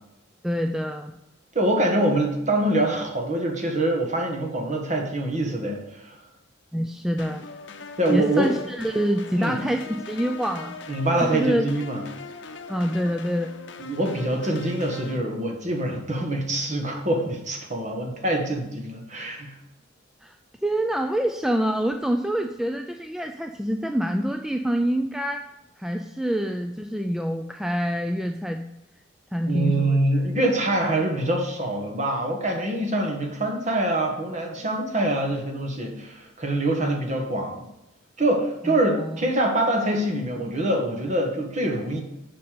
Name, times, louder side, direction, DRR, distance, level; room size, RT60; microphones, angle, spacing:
voice 1, 0.4-1.1 6.7-7.5 8.1-10.8 11.3-11.7 12.7-13.5 20.2-20.4 20.6-25.5 25.8-28.6 29.3-30.0 38.7-39.2, equal, ahead, 5 dB, 0.3 m, -26 dB
voice 2, 1.5-6.2 8.0-8.5 9.3-9.6 10.9-12.0 13.8-19.6 29.5-37.7 38.2-42.0, right 1 dB, 40° right, 2 dB, 1.5 m, -25 dB
sound 1, 7.2-15.2, left 4 dB, 65° left, 0.7 m, -41 dB
6.7 x 5.4 x 6.7 m, 0.88 s
head